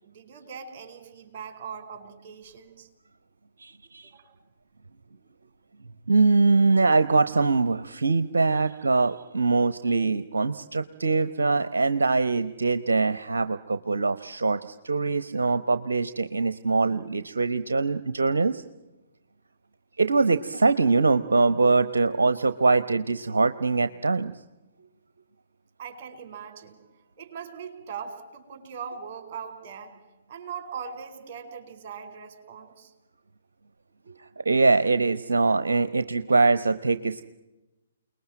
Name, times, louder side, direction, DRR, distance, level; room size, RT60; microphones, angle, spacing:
voice 1, 0.0-2.9 4.0-4.3 9.4-9.5 25.8-26.8 27.2-30.0 30.3-32.9, right 6 dB, 35° right, 7 dB, 4.9 m, -40 dB
voice 2, 3.6-4.1 6.1-18.6 20.0-24.3 34.4-37.3, right 3 dB, 65° right, 13 dB, 0.9 m, -23 dB
29.5 x 20.5 x 9.0 m, 1.1 s
figure-of-eight pair, 125°, 0 cm